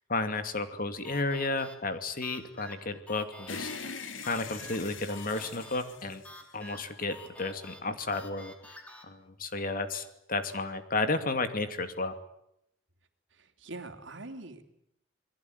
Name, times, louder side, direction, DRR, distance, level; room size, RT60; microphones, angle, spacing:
voice 1, 0.1-4.0 4.2-6.2 6.5-8.8 9.1-12.2, left 3 dB, 50° left, 9 dB, 2.5 m, -33 dB
Tour Bus, 1.0-9.1, left 1 dB, 5° left, 3.8 m, -50 dB
sound 1, 3.5-7.0, left 5 dB, 85° left, 2.5 m, -42 dB
voice 2, 13.3-14.6, right 2 dB, 70° right, 6 dB, 3.1 m, -43 dB
28.0 x 21.0 x 9.5 m, 0.78 s
head